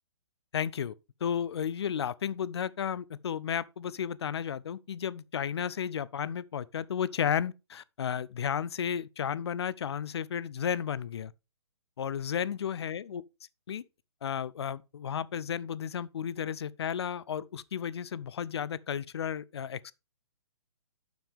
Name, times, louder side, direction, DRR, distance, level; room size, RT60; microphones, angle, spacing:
voice 1, 0.5-0.9 1.2-11.3 12.0-13.2 13.7-13.8 14.2-19.9, left 8 dB, 60° left, 0.6 m, -33 dB
9.2 x 7.0 x 3.5 m
figure-of-eight pair, 135°, 15 cm